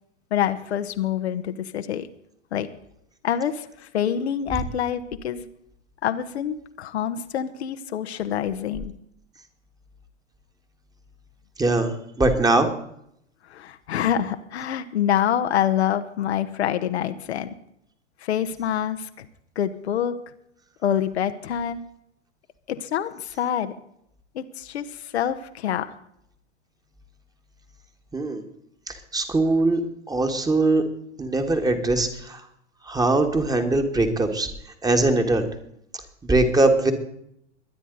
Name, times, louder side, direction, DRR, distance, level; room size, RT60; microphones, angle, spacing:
voice 1, 0.3-2.1 2.5-2.7 3.2-5.5 6.0-8.9 13.5-17.5 18.2-19.2 19.5-20.2 20.8-21.8 22.7-23.7 24.3-25.9, left 9 dB, 60° left, 8 dB, 1.2 m, -26 dB
voice 2, 11.6-12.7 28.1-28.4 28.9-29.8 30.1-30.8 31.2-32.4 32.9-34.5 34.8-35.5 36.2-36.9, right 2 dB, 10° right, 6 dB, 1.9 m, -21 dB
23.0 x 9.8 x 4.0 m, 0.74 s
figure-of-eight pair, 100°, 36 cm